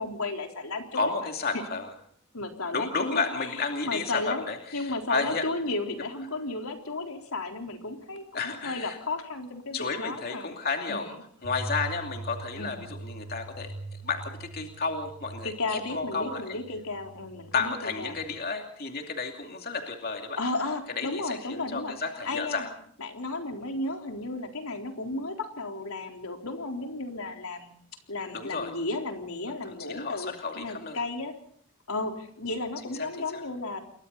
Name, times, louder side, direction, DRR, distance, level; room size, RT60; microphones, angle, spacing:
voice 1, 0.0-1.3 1.5-1.6 2.3-4.5 4.7-10.5 10.9-11.1 12.6-12.9 15.4-18.2 20.4-21.9 22.2-22.7 23.0-27.8 28.1-31.3 31.9-33.8, left 2 dB, 80° left, 3 dB, 3.9 m, -34 dB
voice 2, 0.9-1.8 2.7-5.5 8.3-9.0 9.7-11.1 11.4-13.7 14.0-16.4 17.5-20.4 21.0-22.7 28.3-28.7 29.6-31.0 33.0-33.1 33.3-33.4, left 4 dB, 45° left, 3 dB, 2.6 m, -32 dB
sound 1, 11.4-18.2, right 2 dB, 85° right, 5.5 m, -42 dB
29.0 x 23.0 x 4.1 m, 0.62 s
head